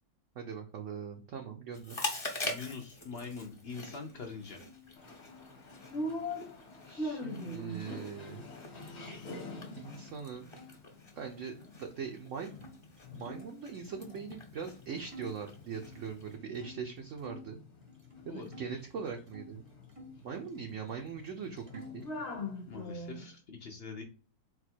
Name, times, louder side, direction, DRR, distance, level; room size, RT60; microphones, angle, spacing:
voice 1, 0.4-2.0 6.8-8.5 9.7-10.5 11.1-12.5 13.2-17.6 18.3-19.6 20.2-22.0, right 6 dB, 65° right, 2 dB, 0.8 m, -41 dB
Chewing mastication, 1.7-16.3, left 2 dB, 25° left, 0.6 m, -45 dB
voice 2, 2.4-4.6 18.3-18.7 22.7-24.0, left 5 dB, 70° left, 2 dB, 0.5 m, -43 dB
sound 1, 3.7-9.4 9.7-10.7 11.3-14.2 14.7-14.8 15.1-17.5 17.9-19.5 19.9-21.0 21.3-22.1, left 1 dB, 35° right, 0.5 m, -54 dB
sound 2, 5.0-12.1 12.5-13.5 13.7-23.3, left 1 dB, 45° left, 1.2 m, -44 dB
4.1 x 2.3 x 4.3 m, 0.37 s
omnidirectional pair, 1.9 m